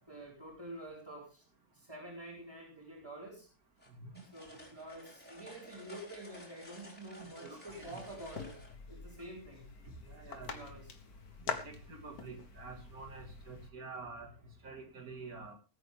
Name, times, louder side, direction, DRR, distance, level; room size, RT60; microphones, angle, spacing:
voice 1, 0.1-1.4 1.7-3.5 4.3-8.6 8.9-9.7 10.4-10.9, right 1 dB, 15° right, -5 dB, 4.7 m, -48 dB
sound 1, 3.8-8.8, left 1 dB, 5° left, 4.3 m, -54 dB
voice 2, 4.0-4.3 7.1-8.0 9.9-10.6 11.5-14.3 14.6-15.5, right 4 dB, 70° right, 4 dB, 2.9 m, -48 dB
sound 2, 7.7-13.7, left 5 dB, 75° left, 1.9 m, -45 dB
19.5 x 9.2 x 3.7 m, 0.32 s
omnidirectional pair, 1.6 m